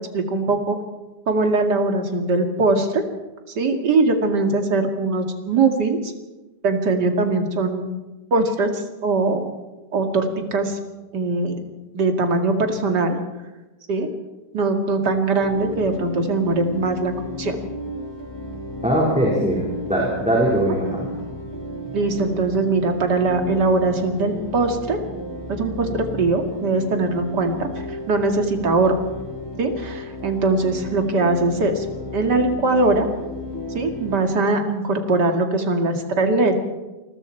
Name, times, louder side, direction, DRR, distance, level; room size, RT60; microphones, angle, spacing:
voice 1, 0.1-0.8 1.3-3.0 3.6-6.1 6.6-7.9 8.3-9.4 9.9-10.8 11.1-11.6 11.9-13.2 13.9-14.1 14.5-17.1 17.4-17.6 21.9-25.0 25.5-28.9 29.6-31.8 32.1-33.1 33.7-36.5, right 3 dB, 70° right, 4 dB, 2.7 m, -21 dB
sound 1, 15.4-34.2, left 1 dB, 15° left, 3.8 m, -34 dB
voice 2, 18.8-21.1, right 1 dB, 5° right, -4 dB, 4.5 m, -21 dB
28.0 x 21.5 x 4.5 m, 1.1 s
omnidirectional pair, 1.9 m